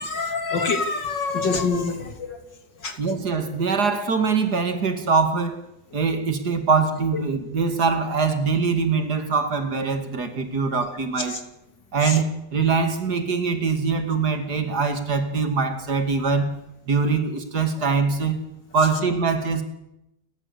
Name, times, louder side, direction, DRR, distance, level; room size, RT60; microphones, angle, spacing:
voice 1, 0.0-2.4 2.8-2.9 11.3-11.4 12.0-12.2, left 4 dB, 80° left, 6 dB, 3.4 m, -25 dB
voice 2, 3.0-5.6 5.9-11.4 11.9-16.5 16.9-18.4 18.7-19.6, right 5 dB, 60° right, 8 dB, 3.1 m, -23 dB
29.0 x 14.0 x 8.5 m, 0.87 s
omnidirectional pair, 1.9 m